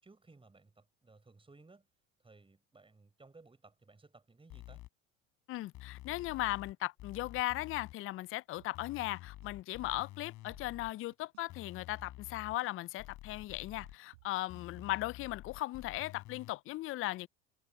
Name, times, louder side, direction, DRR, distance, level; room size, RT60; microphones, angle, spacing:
voice 1, 0.0-1.9 2.2-4.8, right 3 dB, 15° right, 7.8 m, -60 dB
sound 1, 4.5-4.9 5.7-6.7 7.0-7.9 8.7-10.9 11.5-12.6 13.0-13.9 14.5-16.5, left 16 dB, 55° left, 4.3 m, -50 dB
voice 2, 5.5-17.3, left 17 dB, 35° left, 0.5 m, -37 dB
sound 2, 8.6-9.6 9.9-10.0 10.3-11.6 12.0-15.4, right 22 dB, 70° right, 6.8 m, -63 dB
hypercardioid pair, 80°, 36 cm